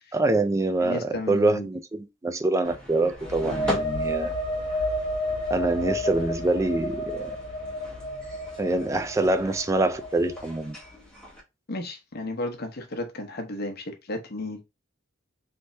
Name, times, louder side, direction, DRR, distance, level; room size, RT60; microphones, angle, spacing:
voice 1, 0.1-4.3 5.5-7.3 8.6-10.8, right 2 dB, 15° right, 0.3 m, -25 dB
voice 2, 0.8-1.7 11.7-14.6, left 2 dB, 50° left, 0.8 m, -33 dB
sound 1, 2.6-11.4, left 1 dB, 5° left, 1.2 m, -40 dB
sound 2, 3.1-10.7, left 1 dB, 25° left, 1.3 m, -31 dB
3.3 x 3.2 x 2.6 m
head